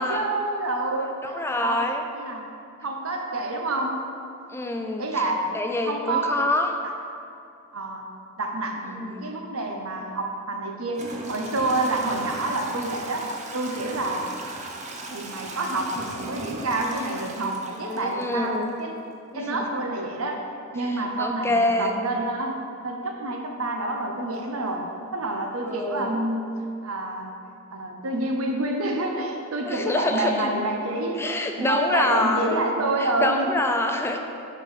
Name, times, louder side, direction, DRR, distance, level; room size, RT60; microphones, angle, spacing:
voice 1, 0.0-1.3 1.6-1.9 2.1-2.5 2.8-4.0 5.0-5.5 5.8-6.3 7.7-8.0 8.4-13.2 13.5-14.3 15.1-18.9 19.3-20.4 20.7-26.5 26.8-27.3 27.7-33.5, right 2 dB, 70° right, 2 dB, 0.9 m, -28 dB
voice 2, 1.2-2.0 4.5-5.2 5.5-6.8 8.9-9.3 17.8-18.7 19.3-19.7 20.8-22.0 25.7-26.1 29.7-30.5 31.2-32.7 33.0-34.2, left 2 dB, 10° left, 4 dB, 0.5 m, -26 dB
Toilet flush / Trickle dribble, 10.1-10.2 10.9-18.7, right 2 dB, 30° right, 0.7 m, -37 dB
6.0 x 5.3 x 5.6 m, 2.6 s
head